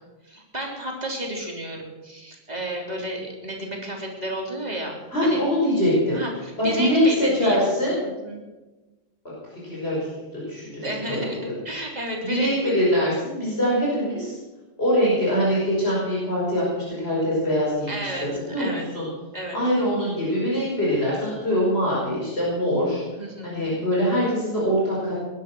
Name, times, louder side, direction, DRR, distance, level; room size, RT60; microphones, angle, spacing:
voice 1, 0.2-5.4 6.1-7.7 8.0-8.4 10.8-12.7 17.9-18.3 18.6-18.9 19.3-19.6 23.2-23.6, right 1 dB, 30° right, 0 dB, 3.7 m, -32 dB
voice 2, 5.1-6.2 6.6-8.0 9.5-11.5 12.2-14.4 14.8-19.1 19.5-23.0 23.4-25.1, equal, 50° left, -6 dB, 5.8 m, -23 dB
19.5 x 11.5 x 6.3 m, 1.2 s
omnidirectional pair, 1.3 m